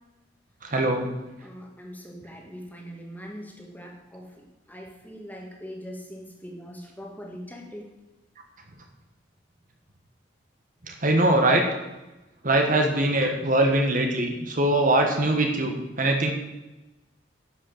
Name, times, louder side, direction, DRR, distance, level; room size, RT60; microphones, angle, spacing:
voice 1, 0.6-1.1 10.9-11.6 12.4-16.3, right 1 dB, 45° right, 3 dB, 1.4 m, -22 dB
voice 2, 1.4-4.3 4.7-7.9, equal, 10° left, 0 dB, 1.9 m, -41 dB
11.0 x 6.5 x 7.2 m, 1.0 s
head